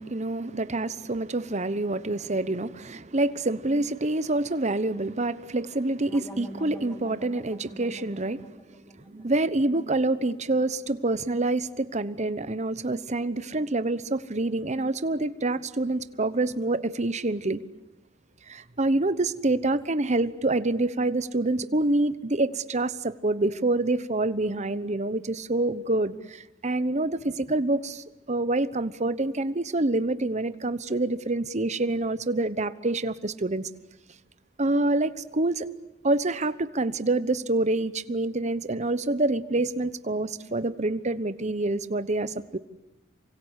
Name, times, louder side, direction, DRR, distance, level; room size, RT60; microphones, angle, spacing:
voice 1, 0.0-8.5 9.1-17.6 18.5-33.7 34.6-35.7 36.0-42.6, right 2 dB, 35° right, 14 dB, 1.0 m, -27 dB
sound 1, 6.1-11.0, right 1 dB, 10° left, 1.7 m, -46 dB
28.0 x 25.0 x 8.3 m, 0.95 s
head